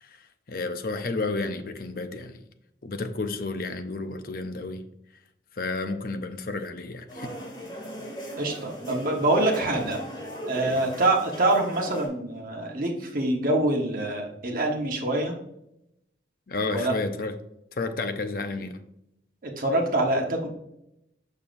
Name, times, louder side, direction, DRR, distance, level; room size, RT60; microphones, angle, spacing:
voice 1, 0.0-2.4 2.8-4.8 5.5-7.3 10.6-10.8 16.5-17.4 17.7-18.8, left 3 dB, 50° left, 8 dB, 0.6 m, -31 dB
sound 1, 7.1-12.1, equal, 25° left, 2.2 m, -37 dB
voice 2, 8.4-10.0 10.5-15.3 16.7-16.9 19.4-20.5, right 2 dB, 50° right, 1 dB, 1.2 m, -25 dB
7.1 x 6.5 x 2.6 m, 0.81 s
head